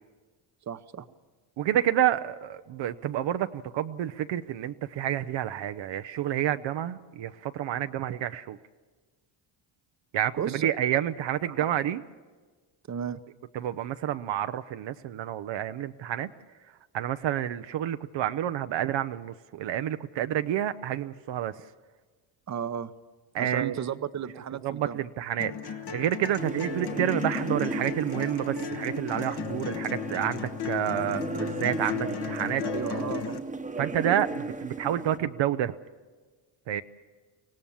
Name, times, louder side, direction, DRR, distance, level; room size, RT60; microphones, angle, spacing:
voice 1, 0.7-1.1 10.4-10.7 11.4-11.6 12.9-13.2 22.5-22.9 23.4-25.0 32.6-33.4, right 8 dB, 35° right, 13 dB, 0.9 m, -34 dB
voice 2, 1.6-8.6 10.1-12.0 13.5-16.3 16.9-21.6 23.3-23.8 24.6-32.6 33.8-35.7 36.7-36.8, right 11 dB, 65° right, 9 dB, 0.8 m, -29 dB
sound 1, 25.4-33.4, left 8 dB, 55° left, 1.4 m, -35 dB
sound 2, 26.4-35.2, right 3 dB, 15° right, 1.1 m, -35 dB
24.0 x 17.5 x 7.2 m, 1.4 s
cardioid pair, 85°, 48 cm